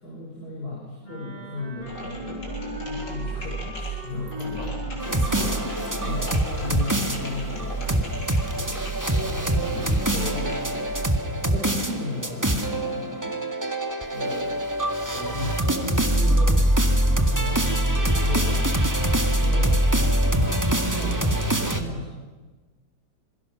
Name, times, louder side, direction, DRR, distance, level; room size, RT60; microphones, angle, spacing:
voice 1, 0.0-5.2 6.0-8.9 9.2-9.8 10.1-10.7 11.1-13.3 14.1-14.6 15.1-16.6 17.2-19.1 19.4-19.8 20.3-22.1, left 2 dB, 55° left, -4 dB, 7.4 m, -35 dB
Wind instrument woodwind instrument, 1.0-6.3, left 1 dB, 25° left, 6.9 m, -39 dB
sound 1, 1.8-11.1, right 3 dB, 75° left, 5.7 m, -34 dB
sound 2, 5.0-21.8, right 1 dB, 10° right, 1.8 m, -24 dB
voice 2, 5.1-6.2 9.7-10.1, equal, 70° right, 0 dB, 8.0 m, -37 dB
27.0 x 23.0 x 6.3 m, 1.2 s
omnidirectional pair, 2.0 m